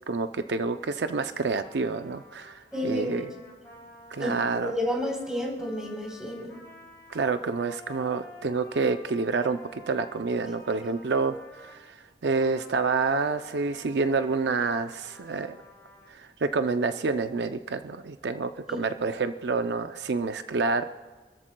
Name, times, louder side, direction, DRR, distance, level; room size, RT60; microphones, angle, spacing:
voice 1, 0.1-3.3 4.1-4.7 7.1-12.0 12.2-15.6 16.1-20.8, right 4 dB, 70° right, 9 dB, 0.5 m, -28 dB
Trumpet, 1.6-11.8 12.3-16.1, left 1 dB, 15° left, 5.2 m, -51 dB
voice 2, 2.7-3.2 4.2-6.6 18.7-18.8, left 1 dB, 5° right, -1 dB, 3.8 m, -31 dB
27.0 x 13.5 x 2.3 m, 1.3 s
head